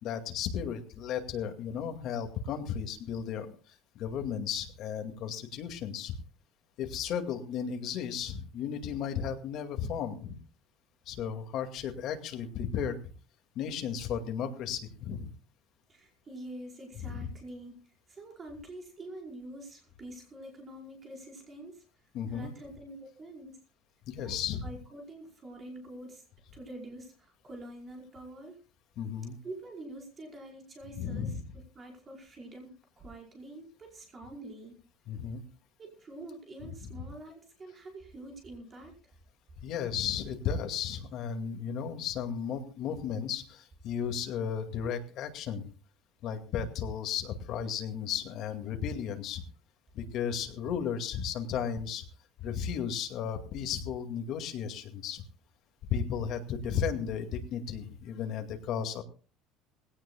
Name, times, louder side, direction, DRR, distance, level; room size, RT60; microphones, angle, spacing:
voice 1, 0.0-3.6 4.0-6.1 6.8-10.4 11.1-13.0 13.6-15.3 17.0-17.3 22.1-22.5 24.1-24.6 29.0-29.4 31.0-31.4 35.1-35.4 37.0-37.1 39.6-45.6 46.2-49.4 49.9-52.0 52.4-55.2 55.9-59.0, left 7 dB, 50° left, 6 dB, 2.2 m, -34 dB
voice 2, 15.9-17.8 18.1-21.8 22.3-23.5 24.2-26.2 26.5-28.6 29.4-34.8 35.8-39.0, right 1 dB, 20° right, 0 dB, 5.2 m, -46 dB
20.5 x 17.0 x 2.3 m, 0.36 s
cardioid pair, 165°, 0 cm